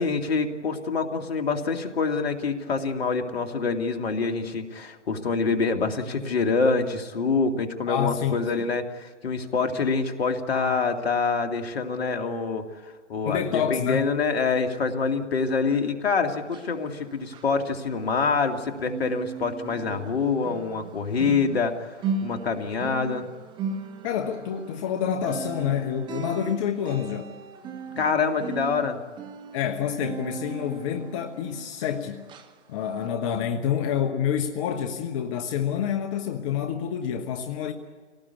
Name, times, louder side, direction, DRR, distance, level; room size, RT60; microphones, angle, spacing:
voice 1, 0.0-22.0 22.2-23.3 28.0-29.0, left 4 dB, 60° left, 5 dB, 2.4 m, -26 dB
voice 2, 7.9-8.4 13.2-14.1 24.0-27.3 27.9-28.1 28.8-28.9 29.5-32.2 32.7-37.7, left 8 dB, 30° left, 6 dB, 1.1 m, -28 dB
sound 1, 16.4-18.5 18.8-31.9 32.3-32.5 33.0-33.1, right 5 dB, 15° right, 1.0 m, -37 dB
26.0 x 18.5 x 8.4 m, 1.5 s
figure-of-eight pair, 135°, 35 cm